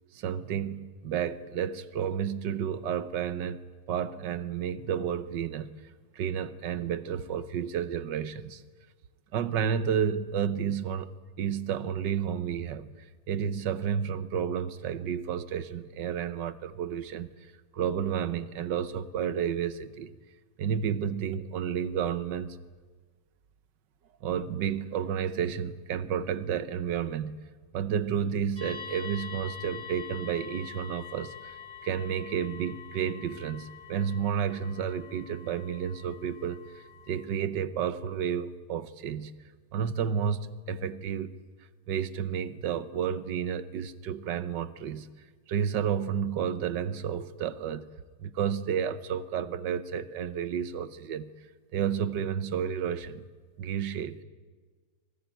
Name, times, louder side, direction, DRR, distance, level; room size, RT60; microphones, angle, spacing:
voice 1, 0.1-3.6 3.9-5.7 6.1-8.6 9.3-11.1 11.4-17.3 17.7-20.1 20.6-22.6 24.2-27.4 27.7-39.3 39.7-41.3 41.9-45.1 45.5-47.9 48.2-51.3 51.7-53.2 53.6-54.2, right 8 dB, 75° right, 1.6 m, -31 dB
sound 1, 28.6-37.2, left 7 dB, 50° right, 5.3 m, -45 dB
25.5 x 18.5 x 9.0 m
omnidirectional pair, 2.0 m